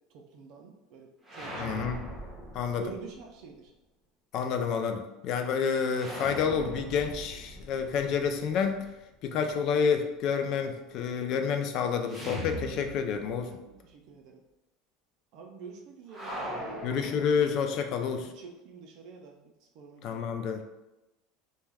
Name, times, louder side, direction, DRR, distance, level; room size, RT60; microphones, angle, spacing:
voice 1, 0.1-1.9 2.7-3.7 13.5-14.4 15.3-16.8 18.2-19.4 19.7-20.2, right 5 dB, 60° right, 2 dB, 0.4 m, -47 dB
sound 1, 1.2-3.2 5.9-8.9 12.1-13.5 13.7-13.8 16.1-17.9, equal, 15° right, 0.8 m, -40 dB
voice 2, 1.6-2.0 2.5-2.8 4.3-8.9 9.2-13.5 16.8-18.3 20.0-20.6, left 6 dB, 50° left, 6 dB, 0.3 m, -29 dB
2.2 x 2.2 x 3.2 m, 0.98 s
supercardioid pair, 130°, 0 cm